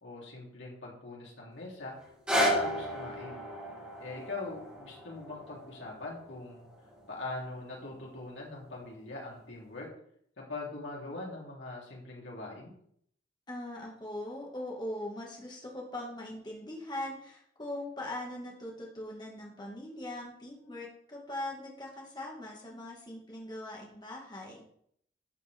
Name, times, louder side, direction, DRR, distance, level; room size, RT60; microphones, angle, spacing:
voice 1, 0.0-1.9 2.3-3.4 4.0-6.7 7.1-9.9 10.4-12.7, left 2 dB, 80° left, -3 dB, 3.2 m, -42 dB
sound 1, 2.0-8.1 8.8-8.9, equal, 5° right, 3.7 m, -34 dB
voice 2, 13.5-24.6, left 1 dB, 25° left, -2 dB, 1.9 m, -41 dB
12.0 x 6.9 x 3.6 m, 0.67 s
head